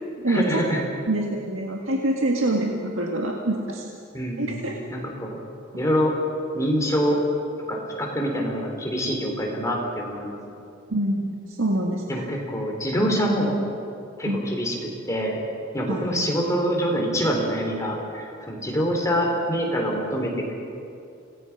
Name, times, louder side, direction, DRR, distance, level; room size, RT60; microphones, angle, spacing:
voice 1, 0.3-0.8 4.1-4.7 4.9-5.4 5.8-6.1 6.5-7.2 7.7-10.4 12.1-13.6 14.2-14.7 15.1-15.4 15.7-20.5, equal, 15° left, -1 dB, 3.7 m, -25 dB
voice 2, 1.1-3.9 4.4-4.8 10.9-12.3 14.2-14.4 15.9-16.0, right 1 dB, 75° right, 0 dB, 1.8 m, -25 dB
27.0 x 18.5 x 6.1 m, 2.5 s
head